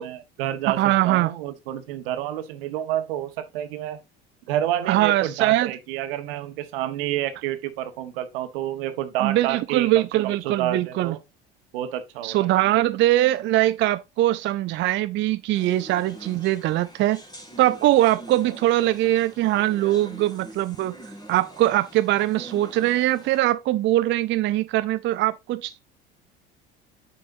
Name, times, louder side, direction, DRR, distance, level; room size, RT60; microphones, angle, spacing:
voice 1, 0.0-0.8 1.0-4.0 4.5-9.9 10.2-11.2 11.7-12.5, right 12 dB, 70° right, 1.2 m, -29 dB
voice 2, 0.7-1.3 4.9-5.7 9.2-11.2 12.2-17.2 17.6-20.9 21.3-25.8, right 15 dB, 40° right, 0.4 m, -22 dB
sound 1, 15.5-23.4, right 1 dB, 15° left, 2.8 m, -44 dB
9.3 x 5.5 x 2.6 m
hypercardioid pair, 65°, 29 cm